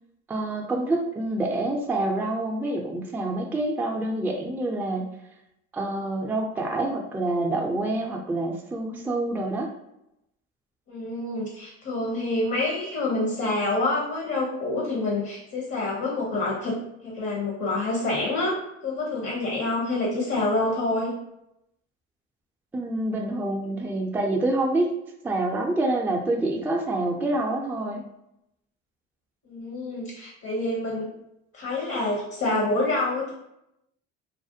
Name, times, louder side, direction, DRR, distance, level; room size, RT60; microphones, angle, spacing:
voice 1, 0.3-5.1 5.7-9.7 22.7-24.9 25.2-28.0, right 2 dB, 5° right, 0 dB, 0.3 m, -27 dB
voice 2, 10.9-18.6 18.8-21.1 29.5-31.1 31.5-33.3, left 2 dB, 45° left, -3 dB, 0.9 m, -27 dB
2.4 x 2.1 x 2.6 m, 0.84 s
supercardioid pair, 75°, 32 cm